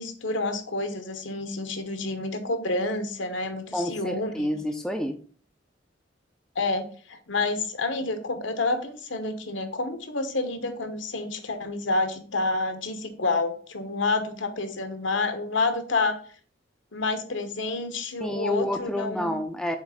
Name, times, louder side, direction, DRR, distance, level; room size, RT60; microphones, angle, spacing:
voice 1, 0.0-4.5 6.5-16.2 16.9-19.4, left 3 dB, 70° left, 8 dB, 1.0 m, -29 dB
voice 2, 3.7-5.2 18.2-19.8, left 1 dB, 5° left, 5 dB, 0.5 m, -29 dB
7.2 x 3.2 x 5.0 m, 0.43 s
head